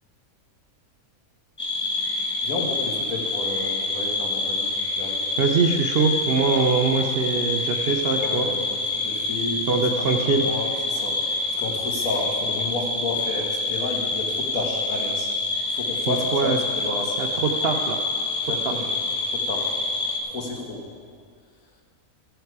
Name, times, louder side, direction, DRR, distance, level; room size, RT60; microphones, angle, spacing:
sound 1, 1.6-20.2, left 3 dB, 15° left, 1.2 m, -27 dB
voice 1, 2.4-4.7 5.0-5.3 8.2-9.6 10.0-11.2 11.6-15.3 15.7-17.1 18.4-18.9 19.3-19.7 20.3-20.8, left 2 dB, 70° left, 0 dB, 1.9 m, -31 dB
voice 2, 5.4-8.5 9.7-10.5 16.1-16.6 17.2-18.0 18.6-18.8, right 5 dB, 55° right, 3 dB, 0.7 m, -23 dB
13.5 x 8.0 x 4.7 m, 2.1 s
omnidirectional pair, 1.5 m